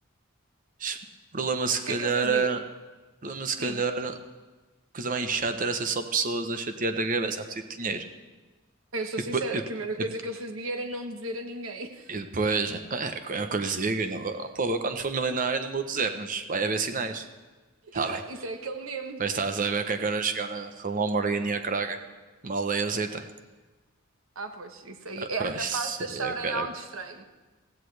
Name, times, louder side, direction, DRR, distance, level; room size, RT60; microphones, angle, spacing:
voice 1, 1.3-2.6 3.2-4.2 4.9-8.0 9.3-9.6 12.1-17.3 17.9-18.2 19.2-22.0 22.4-23.3 25.4-26.7, right 4 dB, 40° right, 8 dB, 0.9 m, -28 dB
voice 2, 1.9-2.5 3.6-3.8 8.9-12.1 17.8-19.2 24.3-27.2, right 2 dB, 75° right, 6 dB, 1.2 m, -34 dB
16.0 x 15.5 x 3.4 m, 1.3 s
head